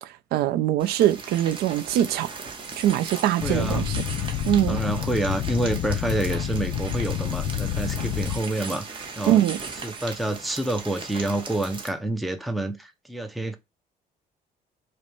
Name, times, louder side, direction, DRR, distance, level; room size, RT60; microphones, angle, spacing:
voice 1, 0.0-2.3 2.8-3.9 4.5-4.8 9.3-9.6, right 12 dB, 85° right, 0.4 m, -22 dB
sound 1, 0.8-11.9, right 4 dB, 30° right, 0.8 m, -38 dB
sound 2, 3.4-8.4, left 10 dB, 85° left, 0.6 m, -28 dB
voice 2, 3.4-3.9 4.7-9.4 9.8-13.6, right 1 dB, ahead, 0.4 m, -28 dB
5.1 x 2.1 x 3.0 m
cardioid pair, 165°, 16 cm